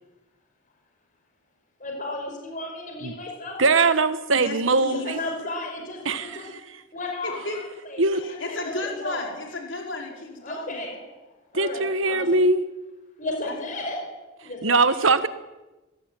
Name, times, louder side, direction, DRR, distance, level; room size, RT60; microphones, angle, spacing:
voice 1, 1.8-3.9 4.9-6.5 6.9-8.0 8.5-9.3 10.4-11.0 11.5-12.3 13.2-14.1 14.4-15.1, left 2 dB, 40° left, 2 dB, 5.2 m, -34 dB
voice 2, 3.6-5.2 6.0-6.6 8.0-8.2 11.5-12.6 14.6-15.3, right 3 dB, 70° right, 12 dB, 1.4 m, -21 dB
voice 3, 4.4-5.1 7.2-7.6 8.2-10.9 13.4-13.6, left 2 dB, 60° left, 1 dB, 4.7 m, -34 dB
22.5 x 16.5 x 9.2 m, 1.1 s
head